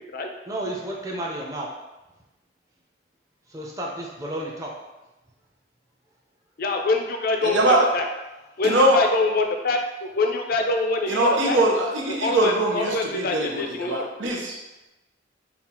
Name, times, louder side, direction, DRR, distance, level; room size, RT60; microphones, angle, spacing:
voice 1, 0.5-1.7 3.5-4.7, right 1 dB, 20° right, -2 dB, 0.6 m, -32 dB
voice 2, 6.6-8.0 8.6-11.6 12.1-14.1, left 3 dB, 50° left, 4 dB, 0.5 m, -25 dB
voice 3, 7.4-7.8 8.6-9.0 11.1-14.5, right 1 dB, 90° right, -1 dB, 0.8 m, -22 dB
5.6 x 2.4 x 2.9 m, 1.0 s
head